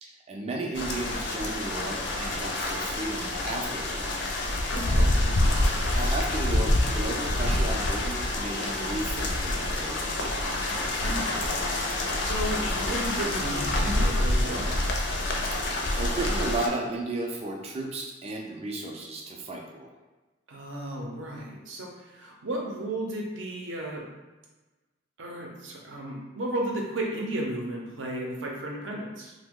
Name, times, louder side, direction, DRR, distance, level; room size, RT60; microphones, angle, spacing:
voice 1, 0.0-4.1 4.8-5.1 6.0-10.3 15.5-19.9, right 2 dB, 30° right, 0 dB, 0.4 m, -34 dB
sound 1, 0.7-16.7, left 1 dB, 60° left, 0.4 m, -27 dB
voice 2, 4.7-5.4 11.0-11.3 12.0-14.8 20.5-24.0 25.2-29.3, right 1 dB, 70° right, -1 dB, 0.6 m, -34 dB
2.9 x 2.1 x 3.6 m, 1.2 s
head